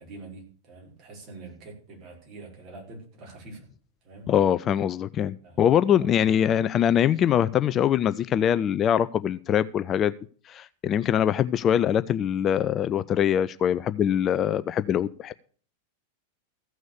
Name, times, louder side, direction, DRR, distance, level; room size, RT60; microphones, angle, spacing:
voice 1, 0.0-3.7 4.0-4.3 5.4-5.6 5.9-6.4, right 3 dB, 40° right, 0 dB, 5.2 m, -45 dB
voice 2, 4.3-10.1 10.5-15.3, left 9 dB, 30° left, 15 dB, 0.5 m, -23 dB
15.0 x 6.3 x 6.6 m, 0.43 s
figure-of-eight pair, 90°, 0 cm